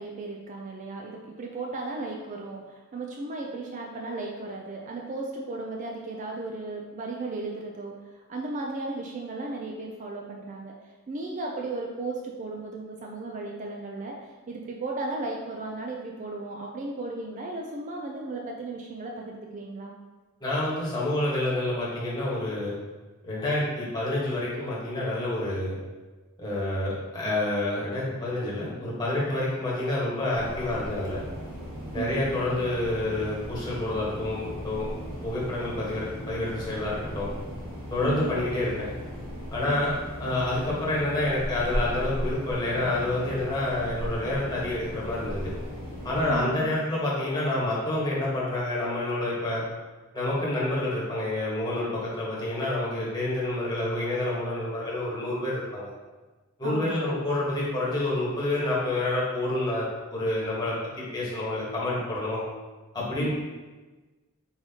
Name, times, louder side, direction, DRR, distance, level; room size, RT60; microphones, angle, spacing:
voice 1, 0.0-10.7 11.1-19.9 31.9-32.3 38.0-38.3 39.7-39.9 46.3-46.7 56.6-57.0 63.2-63.3, right 3 dB, 35° right, 0 dB, 0.4 m, -35 dB
voice 2, 20.4-22.7 23.2-25.8 26.4-31.2 31.9-34.9 35.2-37.3 37.9-38.9 39.5-39.9 40.2-45.5 46.0-49.6 50.1-55.9 56.6-60.7 61.1-62.4 62.9-63.3, left 1 dB, 20° left, -7 dB, 1.2 m, -28 dB
sound 1, 30.3-46.4, equal, 65° right, 1.3 m, -37 dB
4.2 x 3.8 x 2.8 m, 1.2 s
head